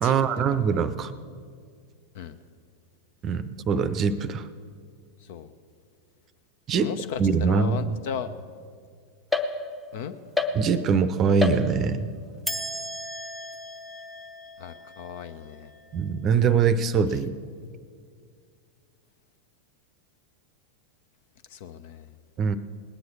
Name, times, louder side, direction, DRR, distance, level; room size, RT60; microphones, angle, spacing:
voice 1, 0.0-1.1 3.2-4.5 6.7-6.9 7.2-8.0 10.5-12.1 15.9-17.4 22.4-22.6, right 6 dB, 30° right, 14 dB, 0.7 m, -23 dB
voice 2, 5.2-5.5 6.7-8.3 9.9-10.1 14.6-15.7 17.1-17.2 21.5-22.1, left 8 dB, 50° left, 11 dB, 0.8 m, -36 dB
sound 1, 9.3-10.0 10.4-11.0 11.4-12.1 12.5-15.9, left 3 dB, ahead, 0.8 m, -32 dB
19.5 x 9.5 x 6.2 m, 2.1 s
figure-of-eight pair, 90°, 0 cm